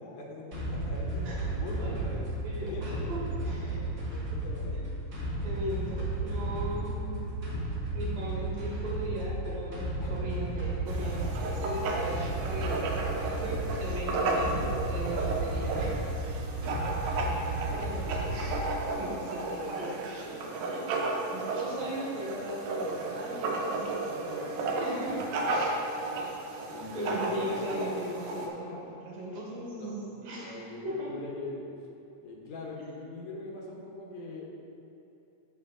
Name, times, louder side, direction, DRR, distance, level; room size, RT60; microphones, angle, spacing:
voice 1, 0.0-2.0 2.3-4.8 10.0-10.2 18.2-18.5 26.7-27.6 29.7-30.1 30.3-31.7 32.2-34.5, left 2 dB, 80° left, -2 dB, 2.5 m, -42 dB
sound 1, 0.5-18.9, right 1 dB, 35° right, 1.5 m, -33 dB
voice 2, 1.8-3.8 4.7-4.8 5.4-7.2 7.9-16.0 17.0-17.4 17.7-25.2 25.5-25.7 26.9-30.6 30.9-31.1, right 1 dB, 70° right, -5 dB, 2.8 m, -38 dB
Writing, 10.9-28.5, right 2 dB, 85° right, 2.2 m, -33 dB
7.1 x 6.6 x 3.7 m, 2.9 s
omnidirectional pair, 3.4 m